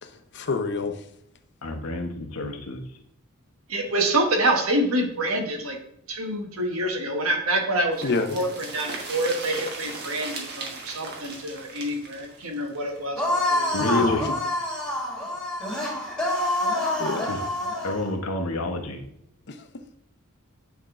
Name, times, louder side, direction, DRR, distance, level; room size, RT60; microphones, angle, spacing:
voice 1, 0.0-1.0 8.0-8.4 13.8-14.3 17.0-17.3 19.5-19.6, left 3 dB, 55° left, 7 dB, 0.7 m, -26 dB
voice 2, 1.6-2.8 13.7-14.2 17.3-17.4 17.8-19.0, left 2 dB, 85° left, 4 dB, 1.0 m, -30 dB
voice 3, 3.7-5.8 6.1-8.5 8.7-13.2 13.5-13.7, right 1 dB, 70° right, 3 dB, 1.3 m, -26 dB
sound 1, 7.9-13.7 14.0-14.1 14.3-14.4, right 3 dB, 50° right, 1.4 m, -37 dB
sound 2, 13.2-18.1, left 1 dB, 5° left, 1.7 m, -27 dB
8.7 x 3.6 x 3.7 m, 0.74 s
head